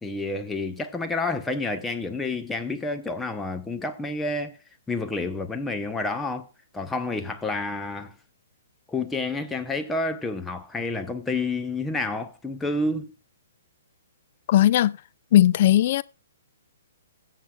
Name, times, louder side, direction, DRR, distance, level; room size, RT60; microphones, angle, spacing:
voice 1, 0.0-4.6 4.9-8.1 8.9-13.1, left 2 dB, 10° left, 0.9 m, -29 dB
voice 2, 14.5-15.0 15.3-16.0, left 12 dB, 45° left, 0.4 m, -18 dB
20.5 x 7.6 x 2.4 m
figure-of-eight pair, 120°, 0 cm